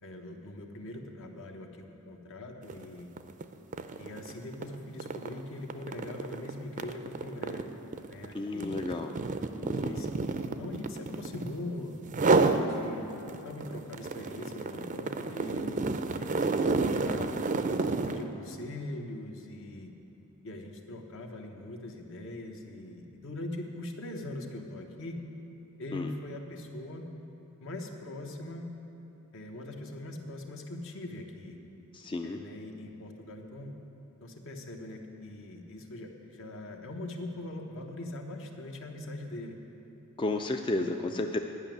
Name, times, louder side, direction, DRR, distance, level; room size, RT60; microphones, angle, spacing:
voice 1, 0.0-3.1 4.0-7.7 8.1-8.7 9.7-13.1 13.4-15.8 16.2-17.3 18.1-19.9 20.4-25.2 25.8-27.1 27.6-28.7 29.3-31.6 32.2-33.8 34.2-39.6 40.8-41.1, left 1 dB, 65° left, 2 dB, 1.1 m, -42 dB
sound 1, 2.6-2.8 3.2-11.6 12.1-12.7 13.1-18.3, right 3 dB, 35° right, 0.4 m, -30 dB
voice 2, 8.3-9.1 9.6-10.0 25.9-26.1 31.9-32.4 40.2-41.4, left 2 dB, 25° left, 4 dB, 0.3 m, -32 dB
11.0 x 6.0 x 9.1 m, 3.0 s
head